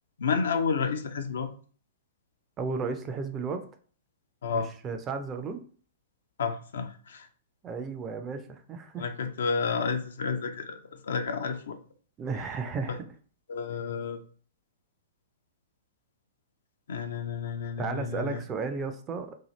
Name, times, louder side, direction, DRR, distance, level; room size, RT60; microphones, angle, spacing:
voice 1, 0.2-1.5 4.4-4.7 6.4-7.3 9.0-10.8 11.0-11.8 13.5-14.2 16.9-18.4, left 5 dB, 60° left, 7 dB, 0.4 m, -30 dB
voice 2, 2.6-3.6 4.8-5.6 7.6-9.1 12.2-13.1 17.8-19.4, right 4 dB, 20° right, 7 dB, 0.4 m, -33 dB
2.7 x 2.4 x 3.0 m, 0.43 s
figure-of-eight pair, 105°, 0 cm